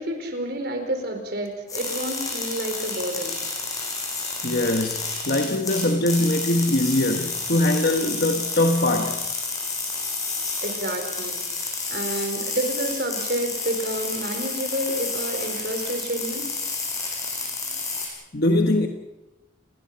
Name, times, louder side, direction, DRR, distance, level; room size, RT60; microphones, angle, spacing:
voice 1, 0.0-3.4 10.6-16.5, right 1 dB, 55° right, 4.6 m, -29 dB
sound 1, 1.7-18.1, left 3 dB, 15° left, 6.2 m, -30 dB
voice 2, 4.4-9.2 18.3-18.9, left 1 dB, 50° left, 1.2 m, -22 dB
28.5 x 21.5 x 5.8 m
head